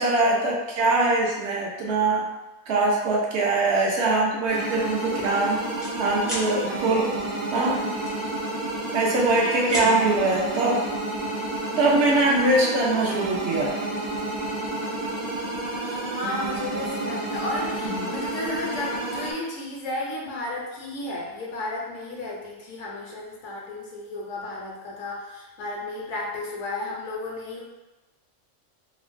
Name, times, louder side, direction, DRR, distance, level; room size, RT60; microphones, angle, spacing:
voice 1, 0.0-2.3 2.7-5.6 6.0-7.1 7.5-7.9 8.9-10.8 11.8-13.7 17.8-18.1, right 2 dB, 60° right, -2 dB, 0.8 m, -22 dB
sound 1, 3.9-4.1 4.6-4.8 5.0-5.9 6.2-6.5 8.1-8.8 9.2-9.9, equal, ahead, 0.5 m, -34 dB
sound 2, 4.5-19.3, right 2 dB, 85° right, 0.3 m, -30 dB
voice 2, 8.7-9.1 14.8-27.6, left 2 dB, 70° left, -3 dB, 0.9 m, -34 dB
3.1 x 2.1 x 2.5 m, 1.1 s
omnidirectional pair, 1.4 m